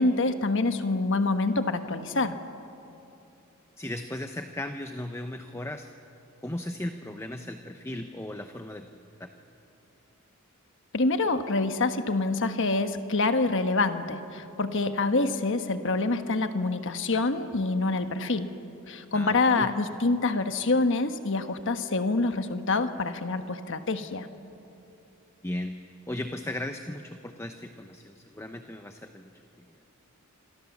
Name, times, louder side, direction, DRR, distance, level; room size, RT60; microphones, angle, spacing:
voice 1, 0.0-2.4 10.9-18.6 18.9-24.3, left 3 dB, 60° left, 8 dB, 1.3 m, -26 dB
voice 2, 3.8-5.9 6.4-8.9 9.2-9.3 19.1-19.7 25.4-25.8 26.1-29.3, left 1 dB, 10° left, 6 dB, 0.8 m, -36 dB
26.5 x 26.5 x 7.3 m, 2.8 s
head